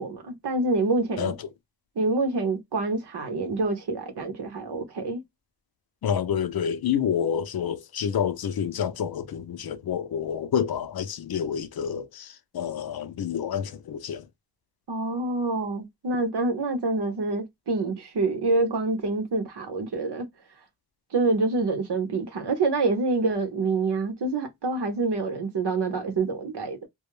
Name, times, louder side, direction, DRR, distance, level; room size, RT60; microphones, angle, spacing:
voice 1, 0.0-1.3 2.0-5.2 14.9-20.3 21.1-26.9, right 3 dB, 85° right, 0.9 m, -26 dB
voice 2, 1.2-1.5 6.0-14.3, left 8 dB, 65° left, 0.5 m, -28 dB
2.3 x 2.1 x 3.0 m
cardioid pair, 65°, 39 cm